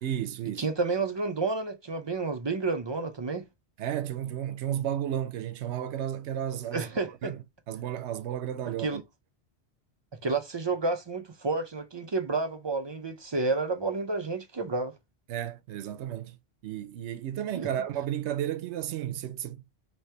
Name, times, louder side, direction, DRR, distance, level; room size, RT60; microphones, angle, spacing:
voice 1, 0.0-0.6 3.8-6.9 7.2-7.4 7.7-9.0 15.3-16.4 16.6-19.6, right 11 dB, 90° right, 0.9 m, -33 dB
voice 2, 0.6-3.5 6.7-7.3 8.8-9.0 10.2-14.9 17.5-17.7, right 3 dB, 45° right, 0.3 m, -30 dB
3.2 x 3.1 x 2.7 m
omnidirectional pair, 1.1 m